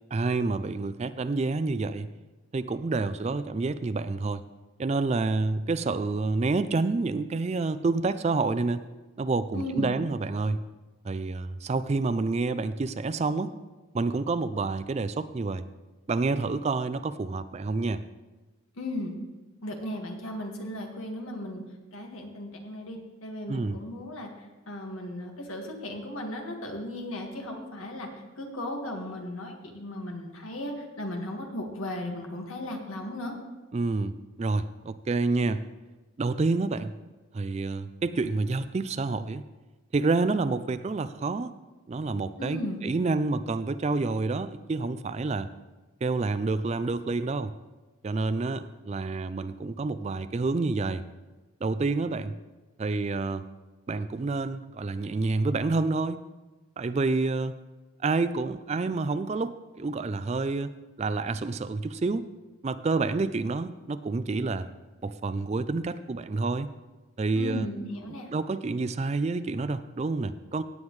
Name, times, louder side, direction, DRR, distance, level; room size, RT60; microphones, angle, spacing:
voice 1, 0.1-2.1 2.5-4.4 4.8-8.8 9.2-10.6 11.0-13.5 13.9-15.6 16.1-18.0 23.5-23.8 33.7-35.6 36.2-36.9 37.3-39.4 39.9-41.5 41.9-45.5 46.0-47.5 48.0-51.0 51.6-52.4 52.8-53.4 53.9-56.2 56.8-57.6 58.0-60.7 61.0-62.3 62.6-64.7 65.0-66.7 67.2-67.7 68.3-70.6, right 3 dB, 30° right, 13 dB, 0.3 m, -28 dB
voice 2, 9.5-9.9 18.8-19.1 19.6-21.6 21.9-28.1 28.4-33.3 42.4-42.8 67.3-68.3, left 1 dB, 85° left, 2 dB, 1.8 m, -36 dB
16.5 x 8.9 x 3.2 m, 1.2 s
head